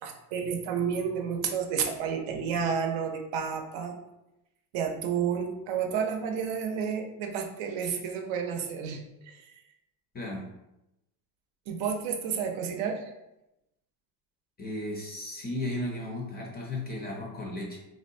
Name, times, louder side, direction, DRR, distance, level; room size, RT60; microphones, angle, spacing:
voice 1, 0.0-4.0 4.7-9.5 11.7-13.1, right 7 dB, 70° right, 4 dB, 0.6 m, -31 dB
voice 2, 14.6-17.8, left 1 dB, 20° left, -1 dB, 0.4 m, -35 dB
3.8 x 2.1 x 2.5 m, 0.92 s
cardioid pair, 120°, 48 cm